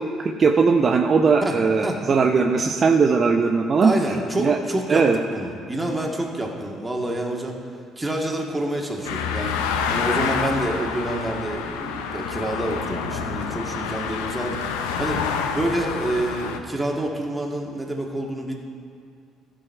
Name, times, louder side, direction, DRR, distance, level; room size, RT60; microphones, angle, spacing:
voice 1, 0.0-4.6 4.9-5.2, right 5 dB, 45° right, 3 dB, 0.5 m, -19 dB
voice 2, 1.4-2.0 3.8-7.6 7.9-18.5, right 1 dB, 15° right, 0 dB, 1.8 m, -28 dB
sound 1, 9.0-16.6, left 6 dB, 80° left, 0.6 m, -27 dB
15.0 x 5.3 x 4.6 m, 2.3 s
hypercardioid pair, 55°, 0 cm